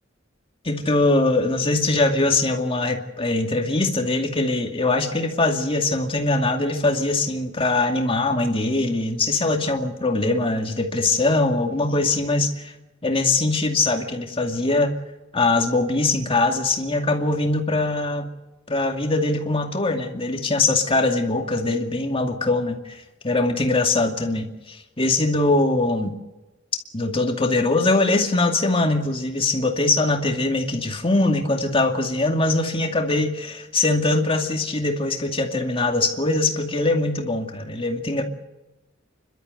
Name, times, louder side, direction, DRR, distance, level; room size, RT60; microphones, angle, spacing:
voice 1, 0.6-12.7 13.0-14.9 15.3-18.3 18.7-23.0 23.2-26.1 26.9-38.2, left 2 dB, 30° left, 3 dB, 2.4 m, -22 dB
29.5 x 12.5 x 8.0 m, 1.0 s
head